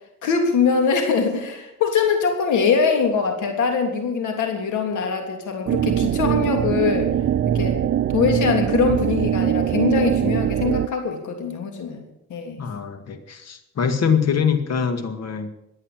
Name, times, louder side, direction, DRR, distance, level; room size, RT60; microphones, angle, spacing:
voice 1, 0.2-7.1 7.4-7.9 8.1-12.7, left 5 dB, 75° left, 4 dB, 3.2 m, -22 dB
sound 1, 5.7-10.9, right 10 dB, 45° right, 0.6 m, -22 dB
voice 2, 12.6-15.5, left 6 dB, 55° left, 9 dB, 2.1 m, -23 dB
16.5 x 9.7 x 7.5 m, 0.84 s
cardioid pair, 90°, 30 cm